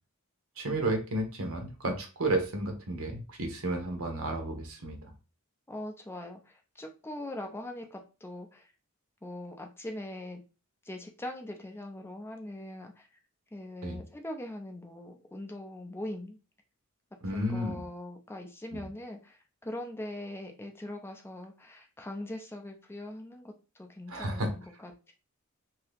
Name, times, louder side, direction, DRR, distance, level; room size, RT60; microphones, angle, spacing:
voice 1, 0.6-5.0 13.8-14.0 17.2-17.8 18.7-18.8 24.1-24.5, right 1 dB, 70° right, 4 dB, 0.9 m, -32 dB
voice 2, 5.7-8.7 9.2-10.4 10.8-13.1 13.5-16.4 17.3-24.9, left 1 dB, 10° left, 3 dB, 0.4 m, -41 dB
2.8 x 2.7 x 3.3 m, 0.32 s
head